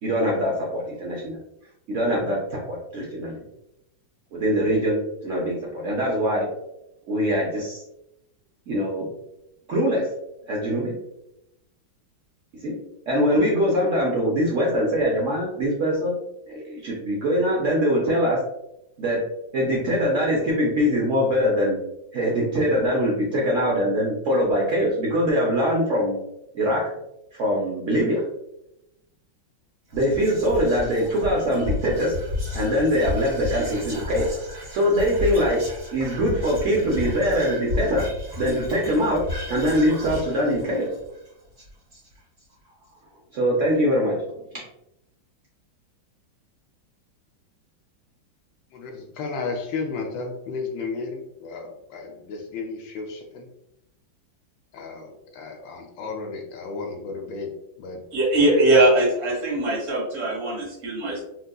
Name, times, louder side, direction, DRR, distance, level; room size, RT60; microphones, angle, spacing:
voice 1, 0.0-1.4 1.9-3.4 4.3-6.5 7.1-7.8 8.7-9.1 9.7-10.0 10.5-10.9 12.6-12.8 13.1-16.1 16.5-18.4 19.0-19.2 19.5-21.8 22.1-26.2 26.5-26.8 27.3-28.2 29.9-32.1 32.5-34.3 34.7-35.6 35.9-38.0 38.4-39.2 39.5-40.9 43.3-44.2, equal, 80° right, -3 dB, 0.6 m, -23 dB
Whispering, 29.9-42.4, left 3 dB, 35° right, 1.6 m, -33 dB
voice 2, 48.7-53.5 54.7-55.1 55.4-57.5 57.8-58.0, left 4 dB, 75° left, 3 dB, 1.2 m, -33 dB
voice 3, 58.1-61.2, right 1 dB, 60° right, -4 dB, 2.1 m, -21 dB
3.8 x 2.7 x 2.2 m, 0.84 s
omnidirectional pair, 2.2 m